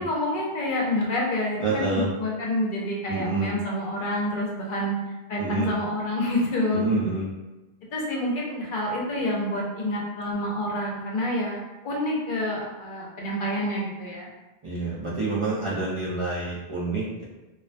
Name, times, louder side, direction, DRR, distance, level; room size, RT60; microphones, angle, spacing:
voice 1, 0.0-6.9 7.9-14.3, left 1 dB, 60° left, -2 dB, 0.7 m, -28 dB
voice 2, 1.6-2.1 3.1-3.5 5.4-5.7 6.7-7.2 14.6-17.2, right 3 dB, 45° right, -7 dB, 0.4 m, -27 dB
2.4 x 2.1 x 2.5 m, 1.1 s
omnidirectional pair, 1.0 m